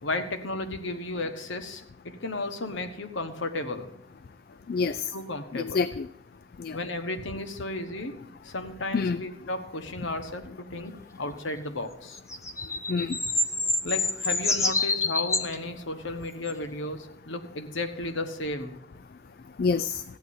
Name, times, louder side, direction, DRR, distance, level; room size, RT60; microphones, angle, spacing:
voice 1, 0.0-3.9 5.1-5.8 6.7-12.2 13.8-18.8, left 2 dB, 85° left, 8 dB, 1.3 m, -34 dB
voice 2, 4.7-5.1 5.5-6.1 6.6-6.8 8.9-9.2 12.9-13.2 19.6-20.0, left 4 dB, 50° left, 14 dB, 0.4 m, -27 dB
sound 1, 12.1-15.6 16.5-16.6, left 2 dB, 15° left, 0.9 m, -27 dB
18.5 x 14.0 x 2.7 m, 0.83 s
head